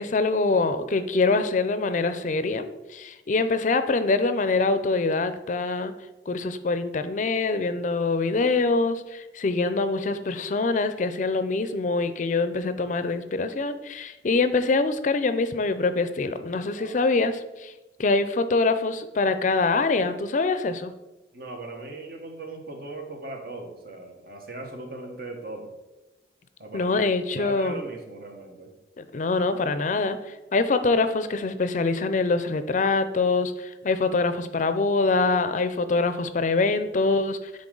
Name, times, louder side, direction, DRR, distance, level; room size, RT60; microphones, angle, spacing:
voice 1, 0.0-2.7 2.9-5.9 6.3-17.7 18.0-20.9 26.7-27.8 29.0-30.2 30.5-37.4, left 3 dB, 45° left, 11 dB, 0.4 m, -24 dB
voice 2, 21.3-25.7 26.6-27.1 27.4-28.7, right 2 dB, 60° right, 3 dB, 1.1 m, -39 dB
9.8 x 3.8 x 3.8 m, 1.0 s
head